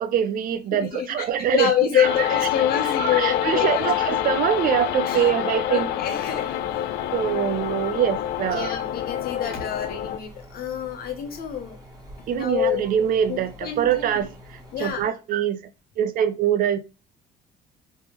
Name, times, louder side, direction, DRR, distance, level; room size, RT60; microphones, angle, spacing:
voice 1, 0.0-1.7 2.0-2.1 2.8-5.9 7.1-8.7 12.3-14.3 14.8-15.6 16.0-16.8, right 9 dB, 55° right, 0.5 m, -23 dB
voice 2, 0.7-1.3 1.5-3.9 5.1-5.3 5.6-6.8 8.5-11.8 12.3-12.8 13.3-14.2 14.7-15.1, left 9 dB, 65° left, 1.1 m, -27 dB
sound 1, 2.0-10.2, left 11 dB, 80° left, 0.4 m, -27 dB
sound 2, 6.1-15.0, equal, 20° right, 1.3 m, -46 dB
3.4 x 3.2 x 3.0 m
cardioid pair, 110°, 17 cm